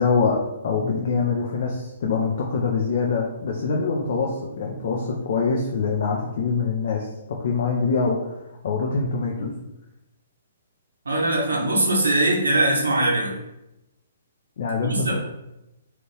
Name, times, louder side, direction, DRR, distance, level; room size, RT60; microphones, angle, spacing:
voice 1, 0.0-8.3 8.6-9.5 14.6-15.2, left 4 dB, 55° left, -1 dB, 0.5 m, -24 dB
voice 2, 11.0-13.3 14.8-15.2, right 1 dB, 70° right, -3 dB, 0.8 m, -21 dB
2.9 x 2.5 x 3.3 m, 0.90 s
figure-of-eight pair, 120°, 0 cm